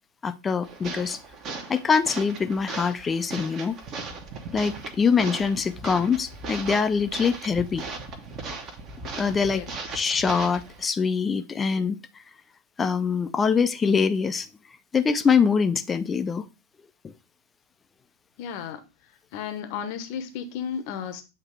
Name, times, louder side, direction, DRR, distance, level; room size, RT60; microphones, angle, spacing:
voice 1, 0.2-1.2 1.7-3.8 4.5-7.8 9.2-9.6 9.9-12.0 12.8-14.5 14.9-16.5 17.0-17.1, left 6 dB, 15° left, 0.5 m, -24 dB
sound 1, 0.6-10.9, right 4 dB, 35° right, 1.0 m, -37 dB
voice 2, 18.4-18.8 19.3-21.2, left 7 dB, 45° left, 0.8 m, -33 dB
8.0 x 2.9 x 4.6 m
figure-of-eight pair, 90°, 0 cm